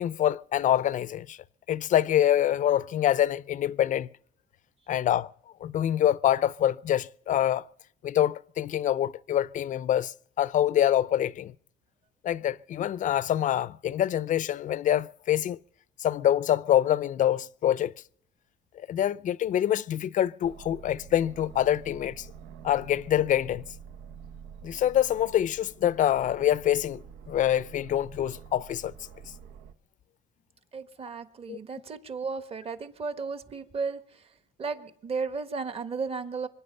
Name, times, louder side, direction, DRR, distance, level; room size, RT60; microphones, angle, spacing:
voice 1, 0.0-1.4 1.7-4.1 4.9-5.3 5.6-7.7 8.0-11.5 12.2-15.6 16.0-17.9 18.8-22.3 22.6-23.6 24.6-27.0 27.3-28.9 31.5-31.6, left 11 dB, 50° left, 0.5 m, -25 dB
Aircraft, 20.4-29.7, right 7 dB, 80° right, 1.1 m, -47 dB
voice 2, 30.7-34.3 34.6-36.5, right 4 dB, 35° right, 1.4 m, -34 dB
25.0 x 9.9 x 5.5 m
cardioid pair, 110°, 17 cm